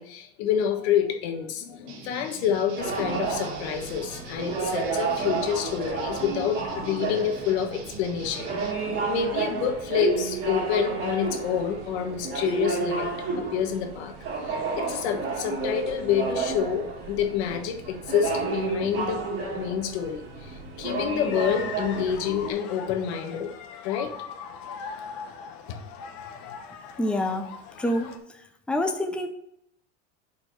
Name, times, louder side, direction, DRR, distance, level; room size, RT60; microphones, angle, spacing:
voice 1, 0.0-8.7 9.1-14.1 14.5-19.2 19.5-23.5 23.8-24.1, left 8 dB, 80° left, 5 dB, 1.3 m, -28 dB
sound 1, 1.9-8.7, right 4 dB, 60° right, 1.9 m, -44 dB
sound 2, 2.8-22.5, right 4 dB, 40° right, 2.0 m, -31 dB
sound 3, 21.3-28.2, left 6 dB, 55° left, 1.1 m, -40 dB
voice 2, 27.0-27.5 27.8-28.1 28.7-29.3, left 1 dB, 5° left, 5 dB, 0.7 m, -26 dB
5.1 x 4.6 x 6.1 m, 0.76 s
supercardioid pair, 120°, 33 cm